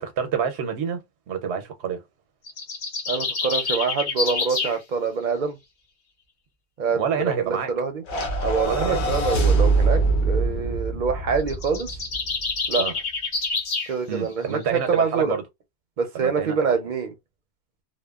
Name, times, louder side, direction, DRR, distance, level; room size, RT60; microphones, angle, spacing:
voice 1, 0.0-2.0 6.9-7.7 8.6-9.2 12.8-12.9 14.1-15.4 16.1-16.6, right 7 dB, 90° right, 0.9 m, -27 dB
sound 1, 2.5-4.8 11.4-13.9, left 4 dB, 50° left, 0.8 m, -27 dB
voice 2, 3.1-5.6 6.8-8.0 8.4-10.0 10.3-11.9 12.7-12.9 13.9-15.3 16.0-17.1, right 5 dB, 55° right, 0.6 m, -25 dB
sound 2, 8.1-12.5, right 3 dB, 85° left, 1.1 m, -23 dB
2.8 x 2.1 x 2.3 m
omnidirectional pair, 1.1 m